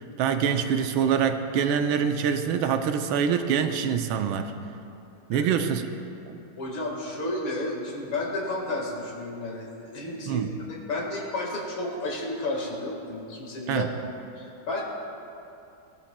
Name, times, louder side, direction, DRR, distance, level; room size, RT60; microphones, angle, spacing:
voice 1, 0.2-4.5 5.3-5.9 6.3-6.4 10.3-10.5 13.7-13.9, right 7 dB, 80° right, 7 dB, 1.4 m, -25 dB
voice 2, 6.6-10.4 10.7-13.9 14.4-14.8, left 2 dB, 70° left, -1 dB, 2.5 m, -32 dB
17.5 x 11.5 x 2.2 m, 2.7 s
omnidirectional pair, 2.2 m